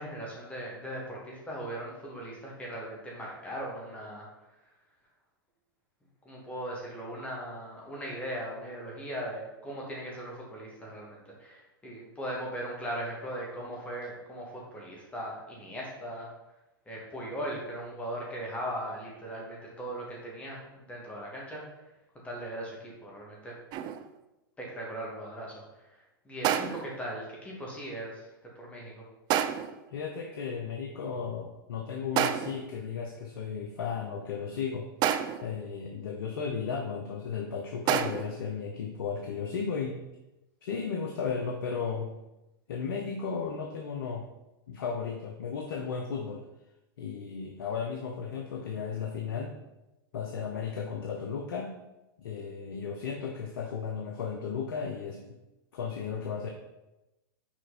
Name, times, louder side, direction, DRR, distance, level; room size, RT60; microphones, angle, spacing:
voice 1, 0.0-4.3 6.2-16.3 16.9-21.6 22.2-23.5 24.6-28.3 28.6-29.0, right 1 dB, 10° left, -3 dB, 2.3 m, -39 dB
sound 1, 23.7-24.2 26.4-27.0 29.3-29.8 32.2-32.7 35.0-35.6 37.9-38.4, right 10 dB, 35° right, 0.4 m, -29 dB
voice 2, 29.9-34.9 35.4-40.0 40.6-42.1 42.7-44.2 44.7-46.4 47.0-49.5 50.1-51.7 52.2-55.4 55.7-56.5, left 6 dB, 70° left, 2 dB, 0.8 m, -34 dB
6.0 x 4.4 x 4.3 m, 0.98 s
hypercardioid pair, 110°, 12 cm